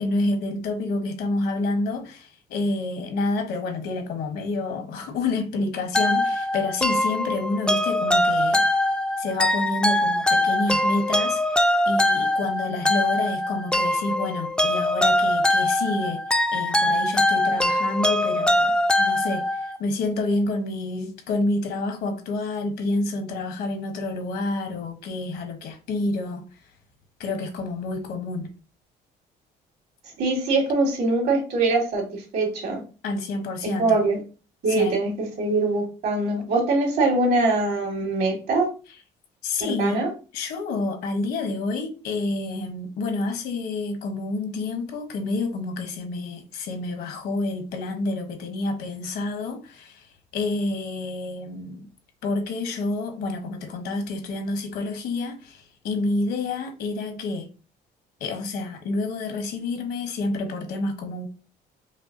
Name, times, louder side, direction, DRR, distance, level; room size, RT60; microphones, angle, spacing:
voice 1, 0.0-8.7 9.2-16.2 16.5-26.5 27.2-28.5 33.0-34.0 34.7-35.0 39.4-40.0 40.3-50.1 50.3-51.9 52.2-57.5 58.2-61.3, left 2 dB, 75° left, 1.0 m, -28 dB
sound 1, 5.9-19.8, left 1 dB, 5° left, 0.3 m, -22 dB
voice 2, 30.2-32.8 33.6-34.2 34.6-38.7 39.6-40.1, right 2 dB, 70° right, 2.0 m, -23 dB
5.5 x 2.2 x 2.6 m
cardioid pair, 110°, 17 cm